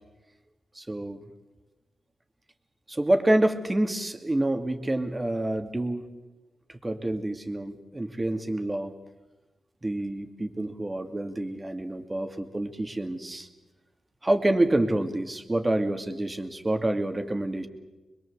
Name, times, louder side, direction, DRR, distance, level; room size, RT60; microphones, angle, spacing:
voice 1, 0.7-1.2 2.9-6.1 6.7-8.9 9.8-13.5 14.2-17.7, right 1 dB, 20° right, 6 dB, 2.6 m, -27 dB
25.5 x 22.0 x 8.1 m, 1.1 s
cardioid pair, 60°, 0 cm